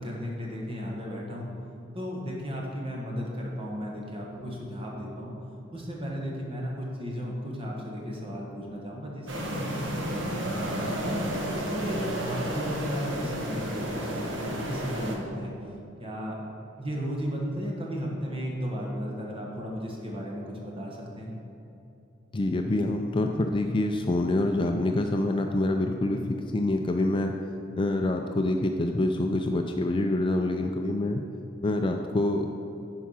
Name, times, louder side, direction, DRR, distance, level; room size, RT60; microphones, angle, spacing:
voice 1, 0.0-1.5 1.9-5.3 5.7-11.2 11.7-15.5 16.0-16.4 16.8-21.3, equal, 30° right, -2 dB, 1.5 m, -34 dB
sound 1, 9.3-15.2, right 1 dB, 70° right, 1.3 m, -32 dB
voice 2, 22.3-27.3 27.8-31.2 31.6-32.5, left 2 dB, 25° left, 4 dB, 0.4 m, -26 dB
10.5 x 4.7 x 5.6 m, 2.8 s
head